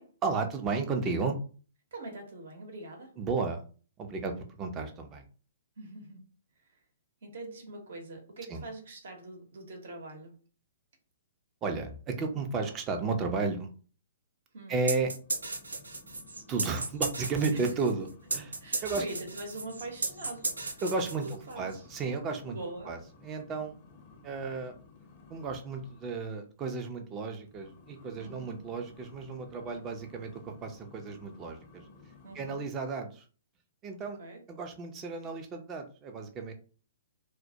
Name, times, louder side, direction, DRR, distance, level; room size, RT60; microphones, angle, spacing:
voice 1, 0.2-1.4 3.2-3.6 4.0-4.3 4.6-5.2 8.5-8.6 11.6-13.7 14.7-15.1 16.5-19.1 20.8-22.6 22.8-23.8 24.2-24.7 25.3-31.8 32.3-33.2 33.8-34.2 34.5-36.5, right 4 dB, 25° right, 4 dB, 0.5 m, -33 dB
voice 2, 1.9-3.1 5.8-6.2 7.2-10.3 14.5-14.7 17.5-17.6 18.4-20.8 21.2-21.8 22.5-22.9 28.2-28.6 32.2-32.6 34.2-34.4, right 2 dB, 60° right, 2 dB, 0.9 m, -43 dB
sound 1, 14.9-21.6, right 3 dB, 80° right, 0.3 m, -35 dB
sound 2, 15.2-26.3 27.4-32.6, left 4 dB, 40° left, 0.5 m, -56 dB
2.1 x 2.1 x 2.7 m, 0.39 s
figure-of-eight pair, 120°, 0 cm